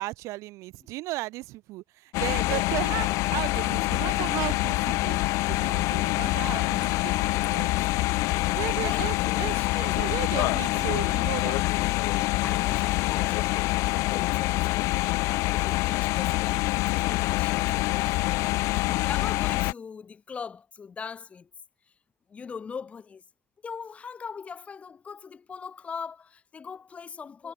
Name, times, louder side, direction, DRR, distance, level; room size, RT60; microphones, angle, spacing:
voice 1, 0.0-7.7 8.6-11.6, right 19 dB, 80° right, 0.8 m, -35 dB
sound 1, 2.1-19.7, left 21 dB, 85° left, 0.4 m, -26 dB
voice 2, 8.8-10.5 12.4-18.5 18.7-21.5 22.3-23.2 23.6-27.5, left 6 dB, 25° left, 2.3 m, -41 dB
cardioid pair, 160°, 5 cm